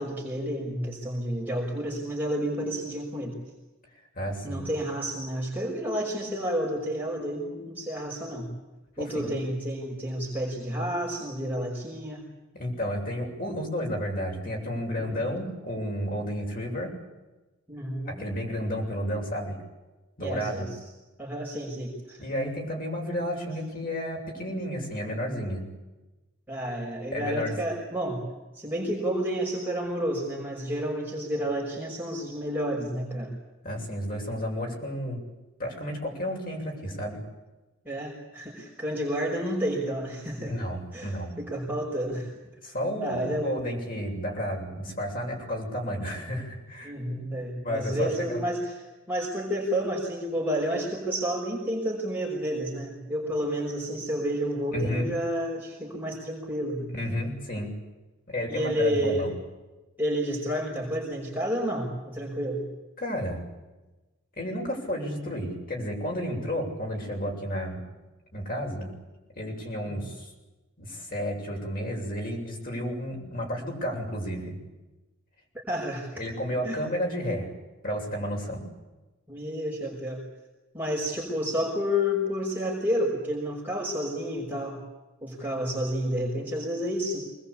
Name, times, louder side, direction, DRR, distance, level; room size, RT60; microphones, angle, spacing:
voice 1, 0.0-3.4 4.4-8.5 9.0-12.3 15.1-15.3 17.7-18.2 20.2-20.7 21.2-22.2 26.5-28.2 28.6-33.4 37.8-40.6 40.9-42.3 42.6-42.7 43.0-43.5 46.8-48.8 49.1-56.9 58.5-59.2 60.0-62.6 69.9-70.0 75.7-76.1 76.6-76.9 79.3-80.2 80.7-84.8 85.2-87.2, equal, 10° right, -3 dB, 5.7 m, -30 dB
voice 2, 4.1-4.7 9.0-9.4 12.5-16.9 18.1-19.6 20.2-20.7 22.2-25.6 27.1-27.6 33.6-35.2 35.6-37.2 40.5-41.4 42.6-47.3 47.6-48.4 53.3-53.4 54.7-55.1 56.9-57.7 58.3-59.3 63.0-63.4 64.4-67.8 68.3-68.9 69.3-70.3 70.8-74.6 76.1-77.5 77.8-78.7, equal, 45° left, 0 dB, 7.7 m, -32 dB
25.5 x 21.0 x 8.7 m, 1.1 s
head